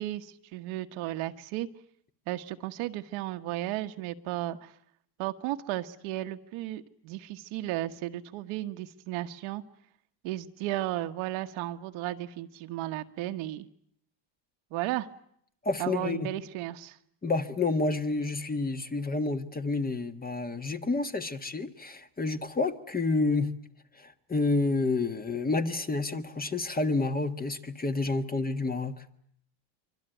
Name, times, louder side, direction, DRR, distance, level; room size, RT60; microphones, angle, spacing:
voice 1, 0.0-1.7 2.3-4.7 5.2-9.6 10.2-13.7 14.7-15.1 15.8-17.0, right 15 dB, 75° right, 1.6 m, -34 dB
voice 2, 15.6-16.3 17.2-23.5 24.0-29.0, left 3 dB, 20° left, 1.6 m, -29 dB
25.0 x 24.5 x 9.3 m
cardioid pair, 120°, 49 cm